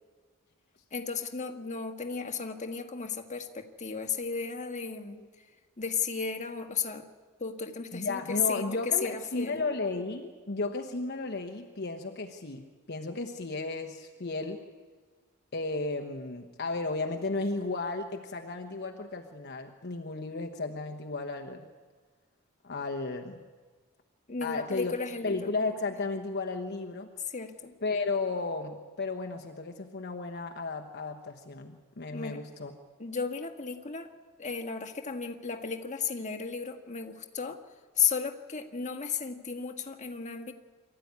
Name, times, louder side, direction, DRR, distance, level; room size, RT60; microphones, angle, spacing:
voice 1, 0.9-5.5 5.8-7.1 7.4-9.6 24.3-25.5 27.3-27.7 32.1-32.4 33.0-34.1 34.4-37.6 37.9-40.5, left 6 dB, 35° left, 5 dB, 1.5 m, -34 dB
voice 2, 7.9-14.7 15.5-21.6 22.6-23.4 24.4-24.9 25.2-27.1 27.8-32.7, left 3 dB, 50° left, 3 dB, 1.2 m, -34 dB
24.5 x 14.0 x 9.6 m, 1.4 s
head